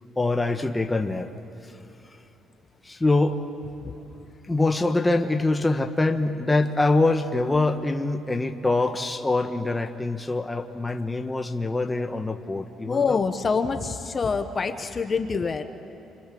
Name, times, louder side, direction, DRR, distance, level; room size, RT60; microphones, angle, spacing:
voice 1, 0.2-1.3 1.6-1.7 2.8-3.4 4.4-13.2, left 2 dB, 10° left, 4 dB, 1.2 m, -24 dB
voice 2, 12.9-15.6, left 5 dB, 30° left, 6 dB, 1.2 m, -26 dB
29.0 x 25.0 x 7.8 m, 3.0 s
cardioid pair, 140°, 0 cm